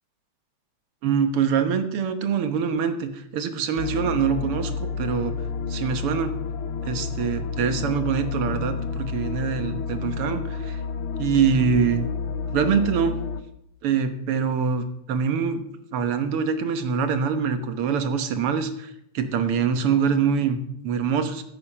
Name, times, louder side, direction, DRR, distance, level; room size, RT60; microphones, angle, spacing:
voice 1, 1.0-5.3 5.7-6.3 6.8-10.8 11.2-12.1 12.5-13.2 13.8-15.6 15.9-21.4, right 6 dB, 85° right, 8 dB, 2.1 m, -24 dB
sound 1, 3.8-13.4, left 5 dB, 80° left, 1.9 m, -30 dB
15.0 x 8.5 x 5.6 m, 0.76 s
omnidirectional pair, 2.4 m